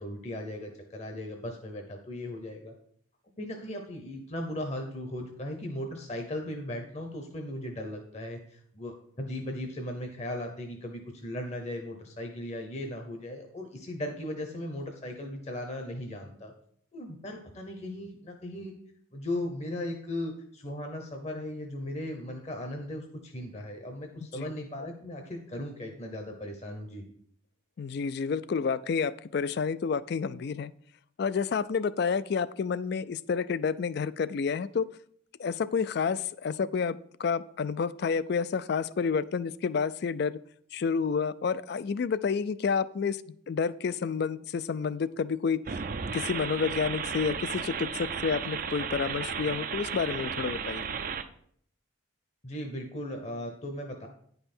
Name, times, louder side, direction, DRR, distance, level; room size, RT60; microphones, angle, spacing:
voice 1, 0.0-2.7 3.4-16.5 16.9-18.7 19.1-27.0 52.4-54.1, left 1 dB, 30° left, 3 dB, 0.8 m, -37 dB
voice 2, 27.8-30.7 31.2-34.9 35.4-40.4 40.7-43.2 43.5-45.8 46.1-50.9, left 5 dB, 50° left, 17 dB, 0.3 m, -29 dB
sound 1, 45.6-51.2, right 6 dB, 40° right, 0.4 m, -34 dB
9.9 x 5.5 x 4.3 m, 0.64 s
head